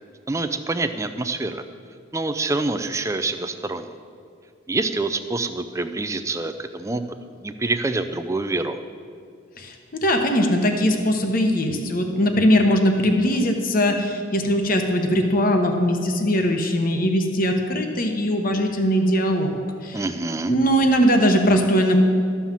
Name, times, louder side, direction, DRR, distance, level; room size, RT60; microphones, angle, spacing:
voice 1, 0.3-1.6 2.1-3.9 4.7-7.0 7.4-8.8 19.9-20.5, right 2 dB, 15° right, 9 dB, 0.4 m, -26 dB
voice 2, 9.6-20.0 20.5-22.0, equal, 40° left, 4 dB, 1.0 m, -20 dB
13.0 x 5.6 x 7.4 m, 2.2 s
head